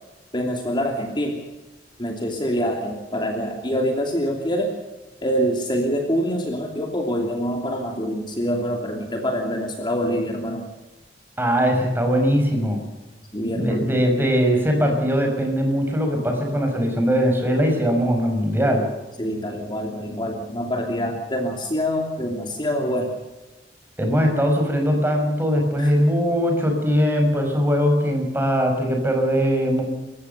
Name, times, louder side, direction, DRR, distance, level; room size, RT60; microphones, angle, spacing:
voice 1, 0.3-1.4 2.0-4.7 5.2-10.7 13.3-13.9 19.2-23.1 25.8-25.9, equal, 25° left, 2 dB, 2.9 m, -25 dB
voice 2, 11.4-12.8 13.5-18.9 24.0-29.8, equal, 10° right, 3 dB, 5.5 m, -20 dB
28.5 x 15.5 x 6.8 m, 1.1 s
head